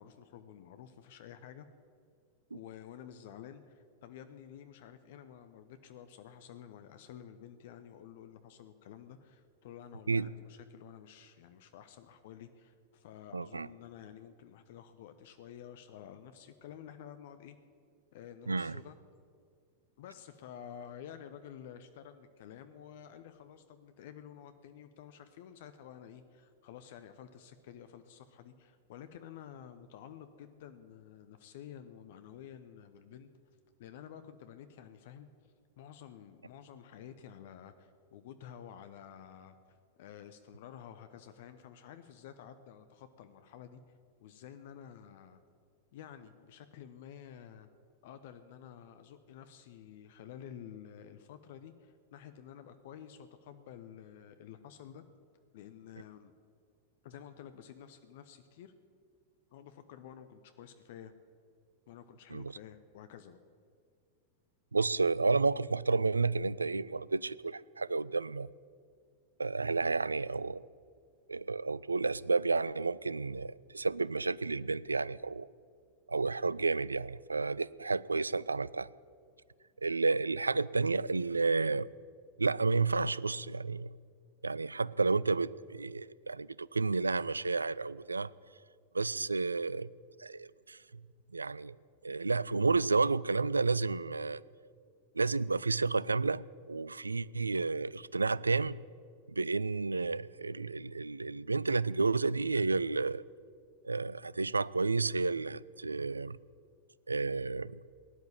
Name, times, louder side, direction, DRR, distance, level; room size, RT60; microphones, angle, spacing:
voice 1, 0.0-1.7 2.5-17.6 18.1-19.0 20.0-33.3 33.8-35.3 35.8-43.8 44.2-45.4 45.9-47.7 48.0-55.0 55.5-56.3 57.0-58.7 59.5-61.1 61.9-63.4, left 9 dB, 55° left, 10 dB, 0.8 m, -51 dB
voice 2, 13.3-13.7 18.5-18.8 62.3-62.5 64.7-68.5 69.4-70.6 71.3-75.5 76.1-78.9 79.8-81.9 82.4-83.9 84.4-88.3 88.9-89.9 90.2-90.8 91.3-91.7 92.0-94.4 95.1-98.7 99.3-103.2 103.8-106.4 107.1-107.8, right 3 dB, 80° right, 21 dB, 0.3 m, -31 dB
17.0 x 10.5 x 7.4 m, 2.2 s
figure-of-eight pair, 90°, 0 cm